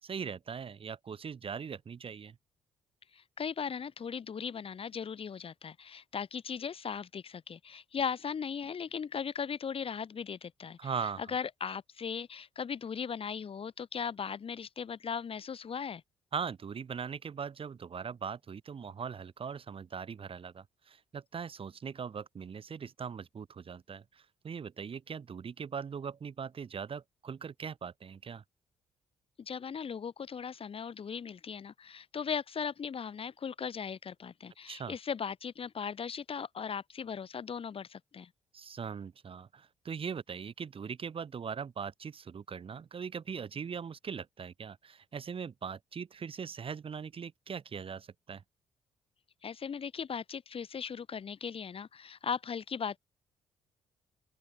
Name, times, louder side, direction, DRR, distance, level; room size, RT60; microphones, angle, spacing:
voice 1, 0.0-2.4 10.8-11.4 16.3-28.4 34.7-34.9 38.5-48.4, right 6 dB, 50° right, 2.9 m, -40 dB
voice 2, 3.1-16.0 29.4-38.3 49.4-53.0, left 6 dB, 50° left, 2.8 m, -38 dB
open air
supercardioid pair, 55°, 12 cm